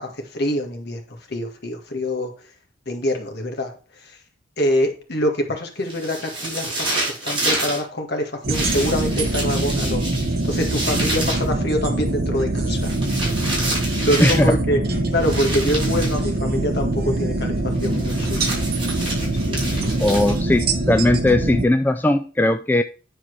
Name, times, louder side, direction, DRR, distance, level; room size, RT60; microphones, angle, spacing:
voice 1, 0.0-2.3 2.9-3.7 4.0-4.2 4.6-10.0 10.4-12.9 13.2-13.3 13.8-14.8 15.1-18.4 19.3-19.9, equal, 55° left, 3 dB, 1.9 m, -25 dB
sound 1, 5.9-7.8 8.5-11.5 12.7-14.5 15.2-16.2 17.8-20.6, right 1 dB, 25° right, 4.7 m, -28 dB
sound 2, 8.4-21.7, right 2 dB, 50° right, 1.2 m, -23 dB
voice 2, 14.2-14.6 17.9-18.1 20.0-22.8, left 1 dB, 10° left, 8 dB, 0.3 m, -19 dB
10.0 x 4.5 x 4.7 m, 0.37 s
head